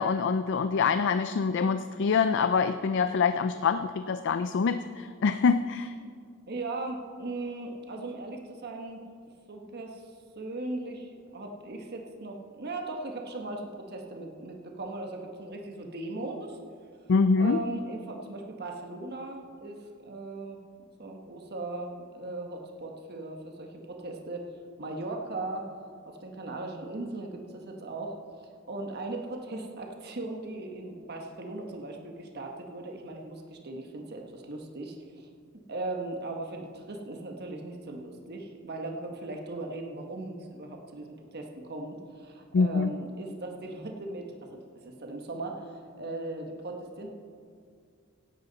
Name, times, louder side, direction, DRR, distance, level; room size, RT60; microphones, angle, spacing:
voice 1, 0.0-5.9 17.1-17.6 42.5-42.9, left 5 dB, 60° left, 11 dB, 0.4 m, -25 dB
voice 2, 6.5-9.0 9.5-10.1 10.3-16.6 17.4-24.5 24.8-25.7 26.1-28.1 28.7-35.3 35.7-47.1, right 2 dB, 50° right, 2 dB, 1.3 m, -38 dB
17.0 x 11.0 x 4.0 m, 2.2 s
head